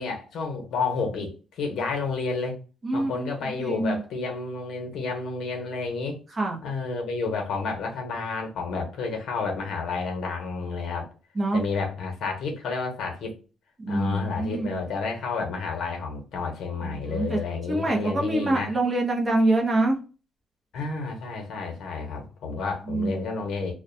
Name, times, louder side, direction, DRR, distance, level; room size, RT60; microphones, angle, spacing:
voice 1, 0.0-2.6 2.9-6.2 6.6-11.1 11.5-13.3 13.9-18.7 20.7-23.7, left 4 dB, 60° left, 2 dB, 0.8 m, -30 dB
voice 2, 2.8-3.3 3.6-4.0 6.4-6.6 11.4-11.6 13.8-14.8 16.8-17.4 17.7-20.0 22.9-23.3, right 2 dB, 20° right, 0 dB, 0.5 m, -25 dB
2.5 x 2.1 x 2.5 m, 0.35 s
cardioid pair, 170°, 0 cm